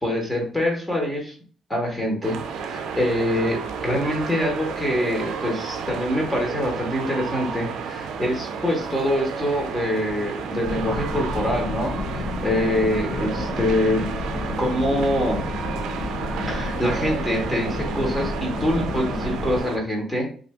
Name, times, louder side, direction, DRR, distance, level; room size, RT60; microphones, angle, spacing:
voice 1, 0.0-1.3 1.7-2.4 2.7-14.1 14.6-15.4 16.5-20.3, left 1 dB, 10° left, 0 dB, 1.2 m, -25 dB
sound 1, 2.2-19.8, right 6 dB, 80° right, 0.4 m, -32 dB
sound 2, 10.6-19.6, left 3 dB, 40° left, 0.5 m, -31 dB
2.6 x 2.6 x 3.3 m, 0.43 s
cardioid pair, 105°, 0 cm